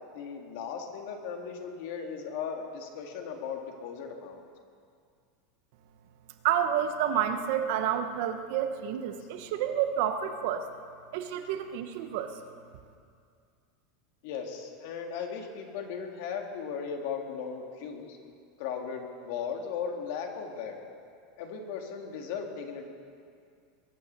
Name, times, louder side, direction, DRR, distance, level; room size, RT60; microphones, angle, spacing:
voice 1, 0.1-4.4 14.2-18.2 18.6-20.8 21.4-22.9, left 6 dB, 60° left, 3 dB, 2.1 m, -37 dB
voice 2, 6.4-10.7 11.1-12.3, right 9 dB, 55° right, 8 dB, 1.0 m, -29 dB
22.0 x 9.5 x 6.7 m, 2.3 s
supercardioid pair, 175°, 0 cm